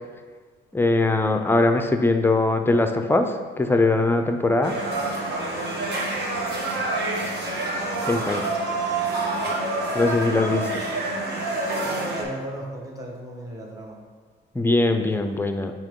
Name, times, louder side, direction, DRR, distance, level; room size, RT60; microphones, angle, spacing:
voice 1, 0.7-4.8 8.1-8.4 9.9-10.7 14.5-15.7, left 2 dB, 10° left, 6 dB, 0.5 m, -21 dB
sound 1, 4.6-12.2, right 2 dB, 55° right, 1.3 m, -27 dB
voice 2, 10.4-10.8 11.8-14.0, right 1 dB, 15° right, -1 dB, 1.1 m, -36 dB
8.8 x 3.0 x 3.6 m, 1.5 s
cardioid pair, 90°, 20 cm